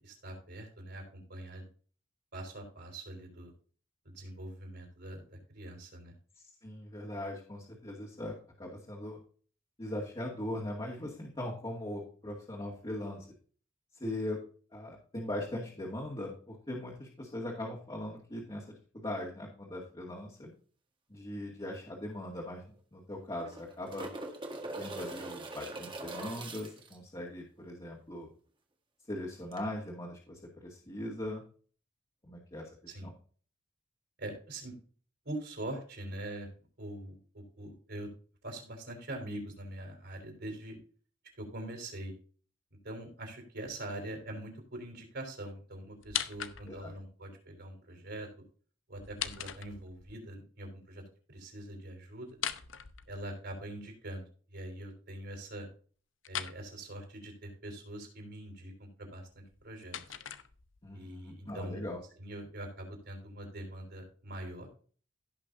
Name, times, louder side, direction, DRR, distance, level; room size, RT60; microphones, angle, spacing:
voice 1, 0.0-1.7 2.3-3.5 4.0-6.1 32.9-33.1 34.2-34.8 35.2-36.5 36.8-38.1 38.4-40.8 41.4-42.1 42.8-48.3 48.9-51.0 51.3-52.3 53.1-55.7 56.3-60.2 60.9-61.8 62.2-64.7, right 1 dB, 60° right, 3 dB, 4.3 m, -43 dB
voice 2, 6.6-9.2 9.8-13.3 14.0-14.4 14.7-20.5 21.1-22.6 22.9-24.1 24.8-28.3 29.1-31.4 32.2-32.7 33.0-33.1 46.7-46.9 60.8-62.0, left 1 dB, 25° left, -4 dB, 2.2 m, -40 dB
sound 1, 21.7-21.8 22.1-22.2 23.2-27.0 29.5-29.6, right 2 dB, 25° right, 1.7 m, -42 dB
sound 2, 46.0-47.0 48.9-50.2 52.3-53.6 56.2-56.6 59.3-60.9, left 10 dB, 75° left, 0.8 m, -40 dB
16.5 x 6.0 x 2.7 m, 0.42 s
head